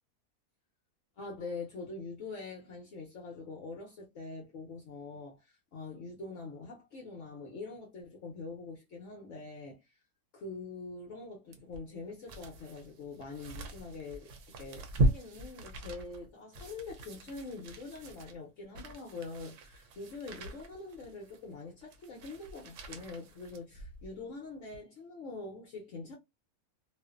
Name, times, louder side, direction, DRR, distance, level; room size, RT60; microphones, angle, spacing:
voice 1, 1.2-10.0 10.3-14.3 14.6-26.1, left 3 dB, 60° left, 1.0 m, -44 dB
sound 1, 11.5-24.2 24.7-24.8, right 1 dB, 65° right, 0.9 m, -38 dB
2.5 x 2.4 x 2.3 m
omnidirectional pair, 1.6 m